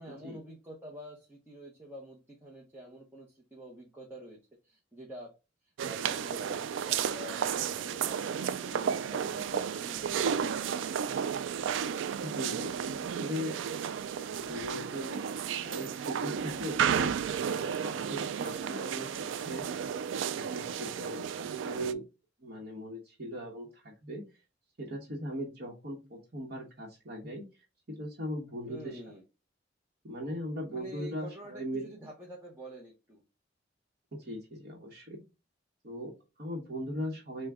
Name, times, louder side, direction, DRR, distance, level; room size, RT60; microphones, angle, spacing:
voice 1, 0.0-4.4 4.6-5.3 5.8-11.2 28.6-29.2 30.7-33.2, equal, 10° right, -2 dB, 0.8 m, -47 dB
sound 1, 5.8-21.9, right 7 dB, 85° right, 0.3 m, -33 dB
voice 2, 12.2-13.6 14.3-15.2 15.6-19.7 20.3-22.0 22.4-24.2 24.8-27.6 28.0-29.0 30.0-31.9 34.1-35.2 35.8-37.5, equal, 55° right, -4 dB, 1.0 m, -39 dB
6.0 x 2.2 x 3.5 m, 0.29 s
head